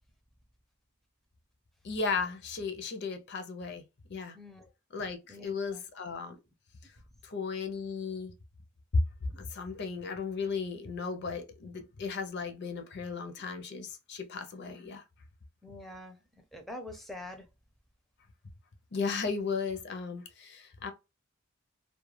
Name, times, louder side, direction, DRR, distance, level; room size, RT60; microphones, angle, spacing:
voice 1, 1.8-3.8 4.1-4.4 4.9-6.4 7.2-8.3 8.9-9.0 9.3-15.0 18.9-20.9, left 4 dB, 50° left, 0.5 m, -35 dB
voice 2, 4.3-4.7 5.3-5.8 15.6-16.2 16.5-17.5, left 1 dB, ahead, 0.4 m, -45 dB
2.3 x 2.1 x 3.0 m
head